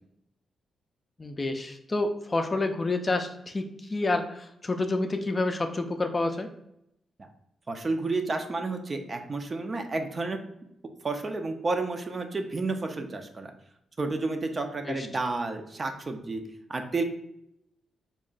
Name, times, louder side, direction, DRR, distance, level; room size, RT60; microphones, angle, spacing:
voice 1, 1.2-6.5 14.9-15.1, left 2 dB, 30° left, 6 dB, 0.4 m, -29 dB
voice 2, 7.7-10.4 11.0-13.5 14.0-16.4 16.7-17.0, right 3 dB, 35° right, 5 dB, 0.5 m, -31 dB
3.6 x 2.1 x 3.9 m, 0.78 s
cardioid pair, 80°, 0 cm